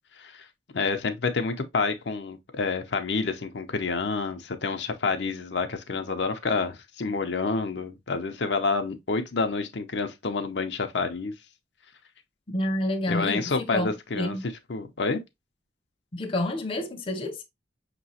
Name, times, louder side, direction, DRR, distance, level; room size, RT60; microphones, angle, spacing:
voice 1, 0.2-0.5 0.7-11.3 13.1-14.4 14.7-15.2, left 4 dB, 70° left, 0.6 m, -28 dB
voice 2, 12.5-14.4 16.1-17.4, left 1 dB, 30° left, 0.6 m, -29 dB
5.5 x 3.0 x 2.7 m
head